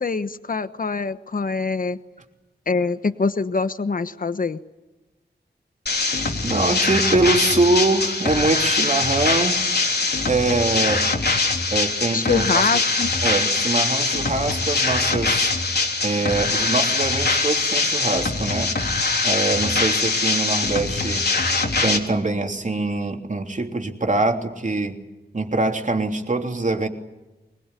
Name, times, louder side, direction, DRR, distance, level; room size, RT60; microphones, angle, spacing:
voice 1, 0.0-2.0 2.7-4.6 12.1-13.1, left 4 dB, 50° left, 12 dB, 1.2 m, -24 dB
sound 1, 5.9-22.0, left 3 dB, 65° left, 3.6 m, -22 dB
voice 2, 6.4-9.6 10.3-11.1 11.7-12.5 13.2-15.5 16.0-18.7 19.2-21.3 21.8-25.0 25.3-26.9, right 2 dB, 45° right, 3 dB, 3.3 m, -23 dB
24.0 x 22.0 x 9.9 m, 1.0 s
wide cardioid pair, 90°, 18 cm